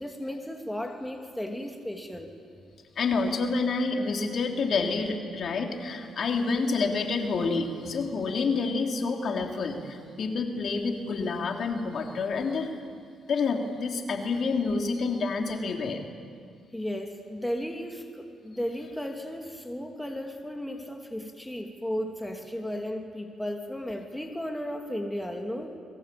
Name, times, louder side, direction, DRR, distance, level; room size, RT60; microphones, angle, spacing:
voice 1, 0.0-2.3 16.7-25.8, equal, 5° left, 3 dB, 2.8 m, -35 dB
voice 2, 3.0-12.7 13.3-16.0, left 4 dB, 55° left, 3 dB, 3.6 m, -28 dB
29.5 x 22.5 x 8.8 m, 2.2 s
cardioid pair, 90°, 0 cm